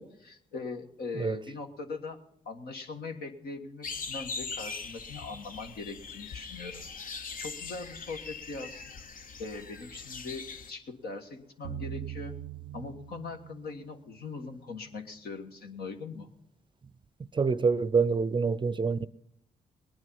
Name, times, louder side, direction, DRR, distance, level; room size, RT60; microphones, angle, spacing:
voice 1, 0.0-2.2 2.4-6.8 7.1-8.9 9.4-12.3 12.7-16.3, left 3 dB, 75° left, 1.5 m, -41 dB
sound 1, 3.8-10.7, left 5 dB, 60° left, 0.9 m, -41 dB
sound 2, 11.6-14.8, right 14 dB, 85° right, 0.5 m, -42 dB
voice 2, 17.3-19.1, right 5 dB, 30° right, 0.5 m, -26 dB
19.0 x 9.7 x 5.6 m
supercardioid pair, 55°, 16 cm